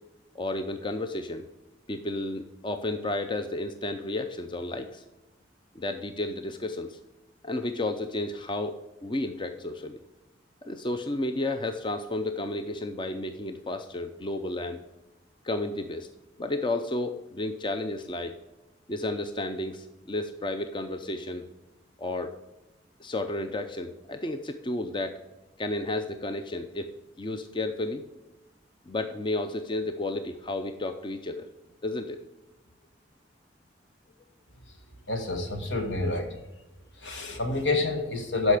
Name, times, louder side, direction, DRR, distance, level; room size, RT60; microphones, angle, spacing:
voice 1, 0.3-1.5 1.9-5.0 5.7-7.0 7.4-10.0 10.6-14.8 15.4-16.1 16.4-18.3 18.9-21.4 22.0-22.4 23.0-25.2 25.6-26.9 27.2-28.0 28.9-31.5 31.8-32.2, left 2 dB, 25° left, 8 dB, 0.5 m, -32 dB
voice 2, 35.1-36.3 37.0-38.6, left 2 dB, 75° left, 5 dB, 1.7 m, -27 dB
12.5 x 5.3 x 4.9 m, 1.0 s
head